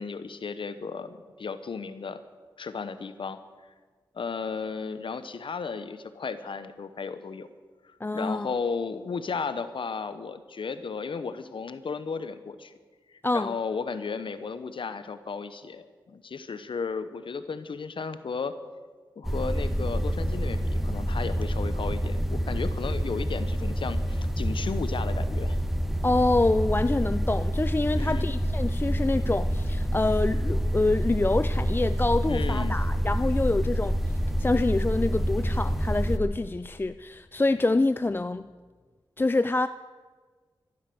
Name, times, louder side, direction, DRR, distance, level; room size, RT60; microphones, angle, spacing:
voice 1, 0.0-2.2 2.6-3.4 4.1-7.5 8.1-12.7 13.1-18.5 19.2-25.6 27.9-28.3 32.3-32.8, left 5 dB, 70° left, 12 dB, 0.9 m, -34 dB
voice 2, 8.0-8.5 13.2-13.5 26.0-34.0 34.4-38.5 39.2-39.7, left 2 dB, 25° left, 12 dB, 0.4 m, -26 dB
sound 1, 19.2-36.2, equal, 5° right, 1.2 m, -27 dB
13.5 x 11.5 x 7.9 m, 1.5 s
cardioid pair, 55°, 9 cm